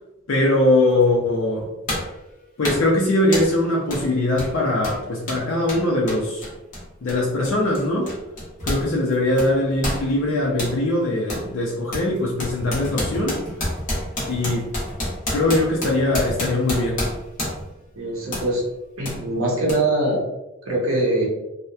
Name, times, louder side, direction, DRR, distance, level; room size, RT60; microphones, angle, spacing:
voice 1, 0.3-1.6 2.6-6.5 7.0-8.1 8.6-13.4 14.2-14.7 15.3-17.0, left 1 dB, 60° left, -3 dB, 0.4 m, -21 dB
sound 1, 1.0-1.1 1.9-2.2 2.6-2.9 3.3-3.6 3.9-4.1 4.3-8.9 9.1-10.8 11.3-11.5 11.9-17.8 18.3-18.5 19.1-19.2 19.7-19.8, left 1 dB, 40° left, 0.8 m, -29 dB
voice 2, 18.0-18.7 19.0-20.2 20.7-21.3, right 1 dB, 75° right, -3 dB, 0.7 m, -22 dB
2.8 x 2.0 x 2.3 m, 0.97 s
head